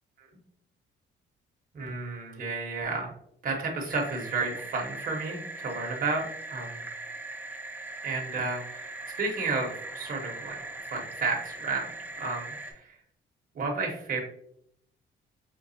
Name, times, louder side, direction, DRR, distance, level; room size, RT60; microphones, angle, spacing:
voice 1, 1.7-3.1 3.4-6.8 8.0-10.6 10.9-11.9 12.2-12.8 13.5-14.2, right 3 dB, 45° right, 0 dB, 1.0 m, -32 dB
sound 1, 3.9-12.7, right 2 dB, 10° right, 0.6 m, -40 dB
5.1 x 2.3 x 2.7 m, 0.71 s
cardioid pair, 90°, 20 cm